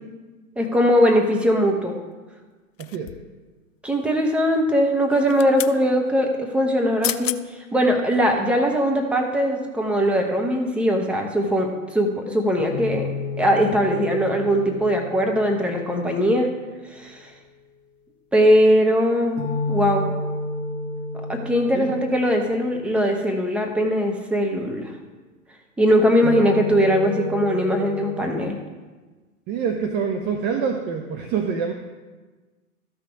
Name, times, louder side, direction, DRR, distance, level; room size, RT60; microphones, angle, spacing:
voice 1, 0.6-1.9 3.8-13.1 13.4-16.5 16.9-17.3 18.3-20.1 21.3-24.9 25.8-28.6, equal, 5° right, 1 dB, 1.0 m, -20 dB
sound 1, 2.8-3.4 5.1-5.8 6.7-6.8 7.0-7.4 7.9-8.1, left 12 dB, 60° left, 0.6 m, -30 dB
voice 2, 2.8-3.1 21.7-22.0 29.5-31.7, right 6 dB, 25° right, 4 dB, 0.6 m, -26 dB
sound 2, 12.6-16.7 19.4-23.6 26.2-28.3, left 3 dB, 15° left, 1.6 m, -32 dB
13.0 x 6.0 x 4.7 m, 1.3 s
hypercardioid pair, 115°, 44 cm